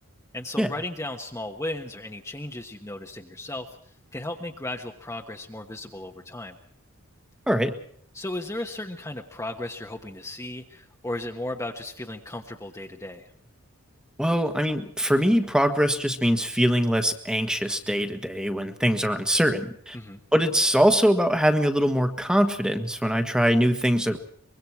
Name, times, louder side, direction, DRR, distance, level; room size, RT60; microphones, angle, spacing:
voice 1, 0.3-3.7 4.1-6.6 8.1-13.3 19.9-20.2, left 1 dB, 15° left, 3 dB, 1.3 m, -35 dB
voice 2, 7.5-7.8 14.2-20.0 20.3-24.2, equal, 5° right, 8 dB, 1.5 m, -22 dB
24.5 x 22.5 x 4.7 m, 0.62 s
head